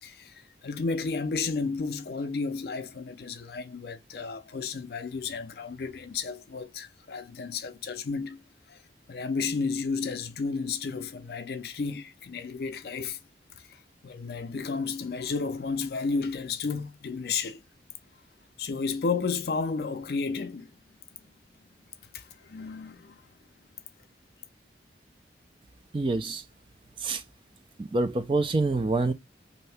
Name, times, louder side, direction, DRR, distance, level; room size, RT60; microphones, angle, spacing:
voice 1, 0.0-8.4 8.7-8.8 9.1-13.2 13.6-17.6 18.6-20.8 22.1-23.2, left 4 dB, 55° left, 0.4 m, -32 dB
voice 2, 25.9-26.4 27.0-27.2 27.8-29.1, right 3 dB, 30° right, 0.3 m, -26 dB
2.7 x 2.7 x 3.2 m
head